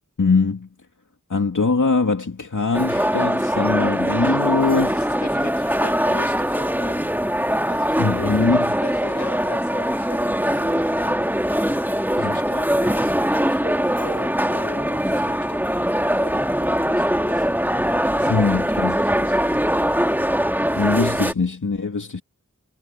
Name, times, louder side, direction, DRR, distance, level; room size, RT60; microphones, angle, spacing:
voice 1, 0.2-0.7 1.3-4.9 8.0-8.7 12.2-12.4 18.3-18.9 20.8-22.2, left 4 dB, 85° left, 2.6 m, -22 dB
sound 1, 2.7-21.3, equal, 5° right, 1.9 m, -22 dB
voice 2, 4.7-7.1 7.6-11.8 12.1-17.5 18.1-19.4, left 3 dB, 65° left, 4.3 m, -40 dB
wide cardioid pair, 45°, 30 cm